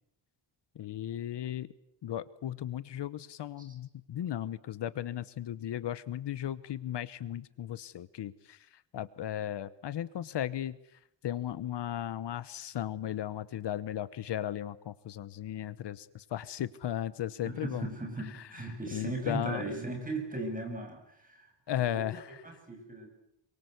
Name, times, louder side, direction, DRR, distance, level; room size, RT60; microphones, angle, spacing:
voice 1, 0.7-1.7 2.0-10.8 11.2-17.9 18.3-18.4 18.9-19.7 21.7-22.4, left 11 dB, 70° left, 16 dB, 1.1 m, -36 dB
voice 2, 17.4-22.1 22.4-23.1, right 2 dB, 20° right, 2 dB, 7.4 m, -38 dB
27.0 x 24.5 x 8.1 m, 0.78 s
wide cardioid pair, 175°, 43 cm